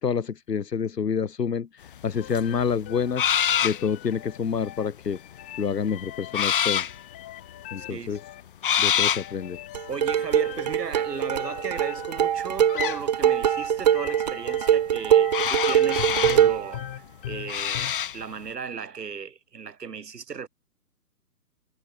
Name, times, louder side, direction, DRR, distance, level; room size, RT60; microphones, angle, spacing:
voice 1, 0.0-3.2 3.6-5.2 5.6-6.9 7.7-8.2 8.8-9.6, left 6 dB, 80° left, 3.2 m, -28 dB
sound 1, 1.9-2.0 2.3-3.9 4.4-4.7 5.2-5.8 6.3-7.0 7.8-7.9 8.1-8.2 8.6-9.3 9.8-10.0 12.7-13.0 15.3-16.5 17.5-18.2, left 9 dB, 35° left, 2.2 m, -25 dB
sound 2, 2.2-17.9, left 15 dB, 5° left, 0.9 m, -41 dB
voice 2, 7.8-8.2 9.9-20.5, right 6 dB, 75° right, 5.6 m, -36 dB
sound 3, 9.7-16.7, right 10 dB, 25° right, 1.5 m, -23 dB
hypercardioid pair, 175°, 48 cm